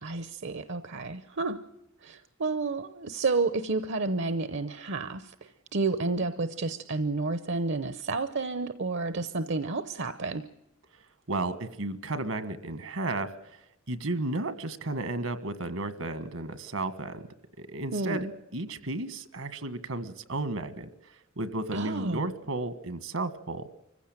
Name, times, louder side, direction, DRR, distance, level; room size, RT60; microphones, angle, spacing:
voice 1, 0.0-1.6 2.0-10.5 17.9-18.3 21.7-22.3, right 3 dB, 60° right, 12 dB, 0.8 m, -31 dB
voice 2, 11.3-13.6 13.9-17.3 17.6-18.3 18.5-23.7, right 2 dB, 75° right, 12 dB, 1.6 m, -33 dB
25.0 x 15.5 x 8.9 m, 0.87 s
head